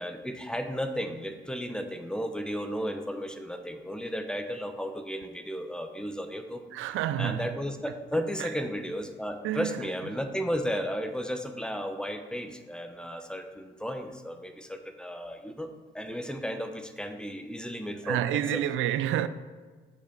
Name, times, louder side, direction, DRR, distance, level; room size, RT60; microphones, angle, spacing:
voice 1, 0.0-6.6 7.2-15.7 15.9-18.6, equal, 5° left, 0.7 m, -34 dB
voice 2, 6.7-7.5 8.4-8.5 9.4-9.9 18.0-19.3, right 11 dB, 85° right, 0.4 m, -29 dB
6.8 x 5.3 x 5.3 m
cardioid pair, 90°, 20 cm